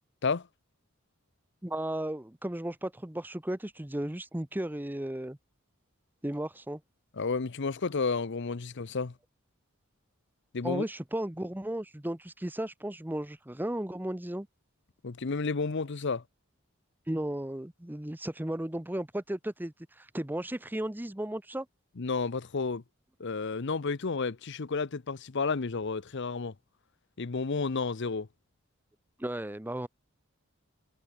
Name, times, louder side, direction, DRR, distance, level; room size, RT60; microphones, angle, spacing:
voice 1, 1.6-5.4 6.2-6.8 10.6-14.5 17.1-21.7 29.2-29.9, right 1 dB, 10° right, 0.8 m, -35 dB
voice 2, 7.2-9.1 10.5-10.8 15.0-16.2 22.0-22.8 23.2-26.5 27.2-28.3, left 4 dB, 55° left, 0.7 m, -31 dB
head